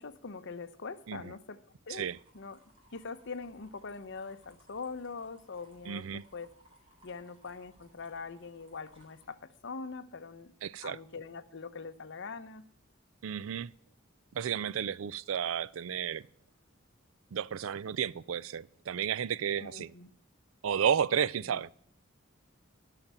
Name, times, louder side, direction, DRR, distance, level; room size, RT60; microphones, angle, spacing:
voice 1, 0.0-1.6 1.9-2.6 2.9-6.5 7.0-10.5 10.8-12.6 19.6-20.1 21.4-21.6, left 4 dB, 60° left, 0.9 m, -43 dB
sound 1, 1.9-9.2, equal, 25° right, 3.9 m, -64 dB
voice 2, 5.9-6.2 10.6-11.0 13.2-13.7 14.3-16.2 17.3-19.9 20.6-21.7, right 8 dB, 80° right, 0.4 m, -32 dB
12.5 x 5.9 x 8.9 m
head